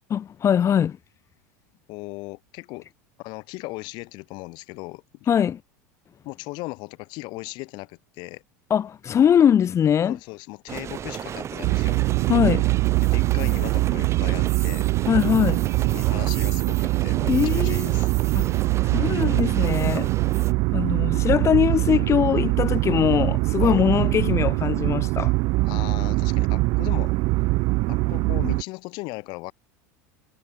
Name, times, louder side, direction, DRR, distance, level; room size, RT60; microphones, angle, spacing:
voice 1, 0.1-1.0 5.3-5.6 8.7-10.2 12.3-12.7 15.1-15.6 17.3-18.0 18.3-20.1 20.7-25.3, left 8 dB, 35° left, 2.3 m, -22 dB
voice 2, 1.9-2.9 3.2-5.0 6.3-8.4 10.1-12.0 13.0-14.9 15.8-18.1 23.6-23.8 25.7-27.1 27.9-29.5, left 24 dB, 60° left, 3.7 m, -37 dB
sound 1, 10.7-20.5, right 8 dB, 30° right, 1.5 m, -35 dB
sound 2, 11.6-28.6, right 23 dB, 55° right, 0.6 m, -23 dB
hypercardioid pair, 100°, 9 cm